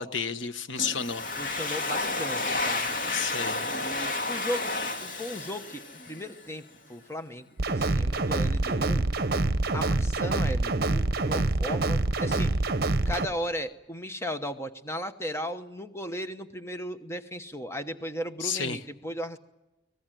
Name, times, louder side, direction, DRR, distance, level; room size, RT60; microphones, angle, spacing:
voice 1, 0.0-1.3 3.1-3.7 18.4-18.8, left 6 dB, 80° left, 12 dB, 1.2 m, -31 dB
Domestic sounds home sounds, 0.8-6.4, left 2 dB, 45° left, 2.5 m, -31 dB
voice 2, 1.4-3.0 3.7-4.7 5.0-6.6 6.9-9.0 9.7-12.5 13.1-19.4, equal, 15° left, 9 dB, 1.1 m, -36 dB
sound 1, 7.6-13.3, right 2 dB, 55° right, 1.0 m, -26 dB
25.0 x 19.0 x 9.1 m, 1.0 s
head